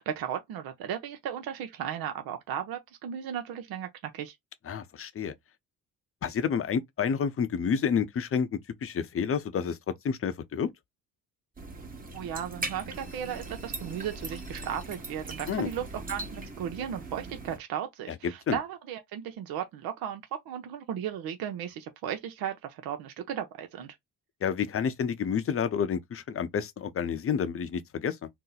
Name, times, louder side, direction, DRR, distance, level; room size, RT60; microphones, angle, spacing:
voice 1, 0.0-4.4 12.1-23.9, right 9 dB, 75° right, 0.7 m, -35 dB
voice 2, 4.7-5.3 6.2-9.8 10.0-10.7 15.5-15.7 18.1-18.6 24.4-28.3, left 7 dB, 40° left, 0.6 m, -29 dB
sound 1, 11.6-17.6, right 2 dB, 25° right, 1.1 m, -40 dB
2.9 x 2.1 x 3.9 m
cardioid pair, 80°, 36 cm